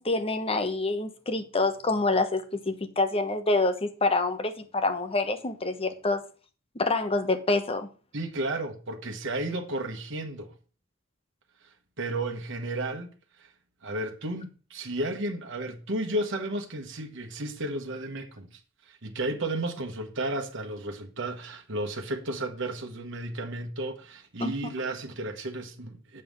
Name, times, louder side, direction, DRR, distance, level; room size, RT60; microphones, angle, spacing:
voice 1, 0.0-6.2 6.7-7.9 24.4-24.6, left 2 dB, 30° left, 1.0 m, -27 dB
voice 2, 8.1-10.5 12.0-13.1 13.8-18.5 18.9-26.2, right 1 dB, 60° right, 1.3 m, -33 dB
7.7 x 5.6 x 5.5 m
head